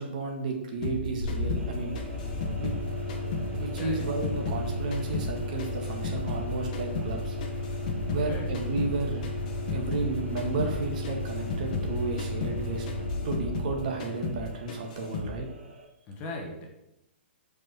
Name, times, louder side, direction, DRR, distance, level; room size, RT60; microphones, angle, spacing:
voice 1, 0.0-2.0 2.6-2.7 3.6-7.4 8.1-9.2 9.7-12.9 13.2-15.5, right 3 dB, 40° right, 3 dB, 1.5 m, -32 dB
sound 1, 0.8-3.5 3.8-6.5 6.7-10.1 10.4-10.8 11.0-13.7 14.0-14.4 14.7-15.3, left 2 dB, 40° left, 1.2 m, -35 dB
sound 2, 1.2-14.7, left 2 dB, 65° left, 1.7 m, -34 dB
sound 3, 1.5-15.9, right 2 dB, 85° right, 1.7 m, -49 dB
voice 2, 16.1-16.7, left 2 dB, 20° left, 0 dB, 1.1 m, -38 dB
5.4 x 5.1 x 6.0 m, 0.88 s
hypercardioid pair, 170°, 6 cm